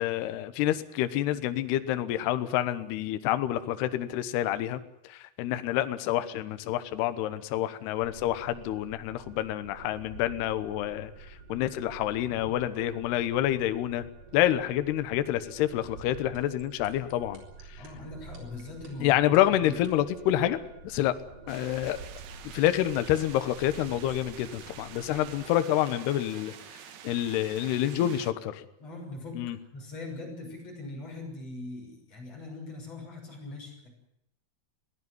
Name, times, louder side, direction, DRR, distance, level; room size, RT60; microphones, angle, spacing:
voice 1, 0.0-4.8 5.0-11.1 11.5-14.0 14.3-17.4 19.0-21.1 21.5-22.0 22.5-26.5 27.0-28.2 28.6-28.7 29.4-29.6, left 13 dB, 70° left, 11 dB, 2.8 m, -28 dB
sound 1, 8.0-25.5, right 3 dB, 55° right, 7.1 m, -49 dB
sound 2, 16.3-20.1, right 5 dB, 35° right, 4.7 m, -52 dB
voice 2, 17.8-19.3 19.6-19.8 27.9-28.2 28.8-29.5 29.7-33.9, left 2 dB, 35° left, 1 dB, 7.2 m, -41 dB
sound 3, 21.5-28.3, right 9 dB, 90° right, 1.5 m, -47 dB
22.0 x 17.0 x 9.6 m, 0.80 s
omnidirectional pair, 5.4 m